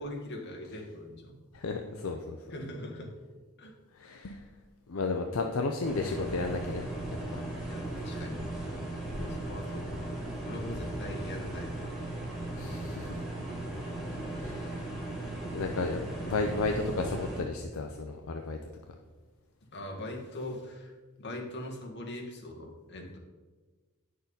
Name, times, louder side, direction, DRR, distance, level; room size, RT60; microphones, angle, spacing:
voice 1, 0.0-1.4 2.5-3.1 3.6-3.7 7.7-8.4 9.3-9.9 10.4-11.8 13.5-13.7 19.7-23.2, left 1 dB, 55° left, 0 dB, 1.6 m, -41 dB
voice 2, 1.5-2.4 4.0-4.4 4.9-6.9 9.2-9.4 12.6-13.2 14.4-14.8 15.5-18.6, left 3 dB, 75° left, 4 dB, 0.6 m, -33 dB
sound 1, 5.8-17.4, right 1 dB, ahead, 2.7 m, -37 dB
9.5 x 6.6 x 4.0 m, 1.3 s
head